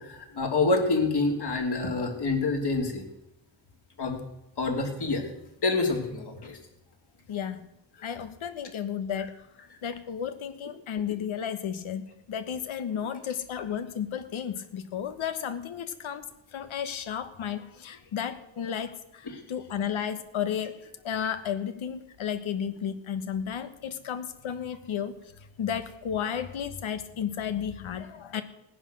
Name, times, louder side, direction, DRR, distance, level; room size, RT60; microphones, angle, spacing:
voice 1, 0.1-3.0 4.0-4.2 4.6-5.2 5.6-6.6 19.3-19.4, left 3 dB, 55° left, 1 dB, 3.2 m, -27 dB
voice 2, 7.3-7.7 8.0-9.3 9.8-16.2 16.5-20.8 21.0-25.1 25.6-28.4, left 8 dB, 85° left, 10 dB, 1.3 m, -33 dB
17.0 x 10.0 x 6.3 m, 0.90 s
wide cardioid pair, 115°, 47 cm